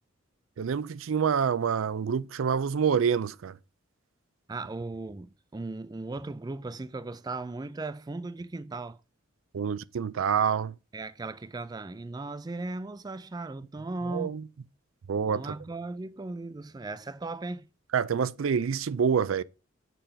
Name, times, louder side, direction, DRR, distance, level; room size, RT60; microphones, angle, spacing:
voice 1, 0.6-3.6 9.5-10.8 14.1-14.4 15.1-15.5 17.9-19.4, right 7 dB, 80° right, 0.4 m, -27 dB
voice 2, 4.5-9.0 10.9-14.4 15.3-17.7, right 2 dB, 20° right, 0.3 m, -37 dB
6.8 x 5.2 x 5.7 m
head